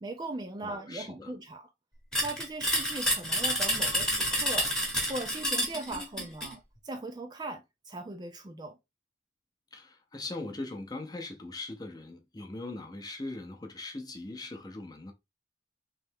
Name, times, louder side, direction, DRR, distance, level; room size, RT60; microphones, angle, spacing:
voice 1, 0.0-1.7 2.2-8.8, right 2 dB, 20° right, 0.3 m, -39 dB
voice 2, 0.6-1.3 9.7-15.1, left 2 dB, 20° left, 0.6 m, -40 dB
sound 1, 2.1-6.5, equal, 5° left, 1.0 m, -29 dB
3.2 x 3.2 x 3.4 m
head